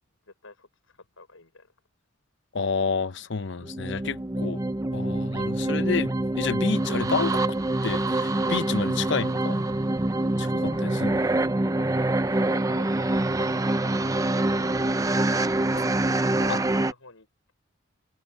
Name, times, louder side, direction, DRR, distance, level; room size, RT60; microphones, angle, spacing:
voice 1, 0.3-1.7 10.7-11.2 11.7-12.0 12.3-15.2 16.1-17.5, left 3 dB, 85° left, 5.8 m, -49 dB
voice 2, 2.5-4.6 4.9-6.1 6.4-7.4 7.8-9.6 10.4-11.2 16.5-16.6, left 5 dB, 60° left, 0.7 m, -29 dB
sound 1, 3.6-16.9, right 2 dB, 15° right, 0.5 m, -25 dB
head